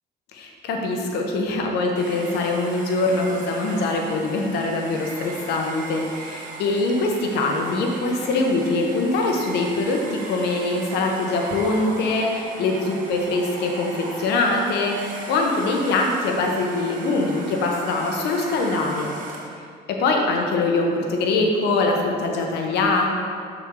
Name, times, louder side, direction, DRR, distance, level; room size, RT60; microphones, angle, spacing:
voice 1, 0.3-19.1 19.9-23.1, left 2 dB, 80° left, 1 dB, 1.1 m, -23 dB
Domestic sounds home sounds, 2.0-19.6, right 2 dB, 50° right, 1.2 m, -38 dB
6.7 x 6.3 x 3.8 m, 2.3 s
cardioid pair, 110°, 17 cm